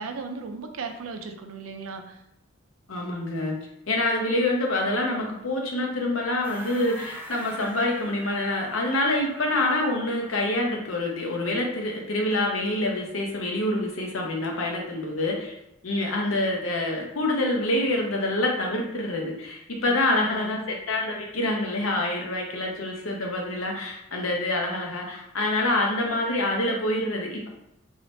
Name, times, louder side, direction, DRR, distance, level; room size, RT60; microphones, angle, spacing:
voice 1, 0.0-2.2 19.9-20.6, right 4 dB, 90° right, 5 dB, 0.5 m, -36 dB
voice 2, 2.9-3.5 3.9-15.5 15.8-27.5, left 1 dB, 85° left, 0 dB, 0.8 m, -26 dB
sound 1, 6.4-10.8, right 2 dB, 10° right, 0.3 m, -43 dB
3.2 x 2.8 x 3.1 m, 0.83 s
head